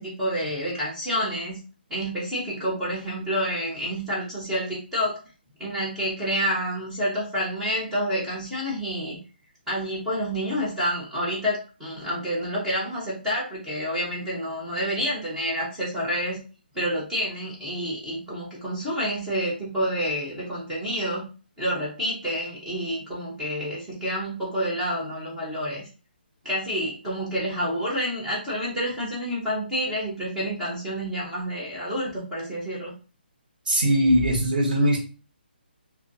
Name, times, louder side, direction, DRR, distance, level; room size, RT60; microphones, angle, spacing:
voice 1, 0.0-1.6 1.9-5.2 5.6-9.2 9.7-16.4 16.7-21.3 21.6-25.9 26.4-32.9, equal, 5° right, -7 dB, 0.3 m, -28 dB
voice 2, 33.7-35.0, equal, 50° right, 1 dB, 0.9 m, -20 dB
2.3 x 2.2 x 2.5 m, 0.34 s
hypercardioid pair, 175°, 6 cm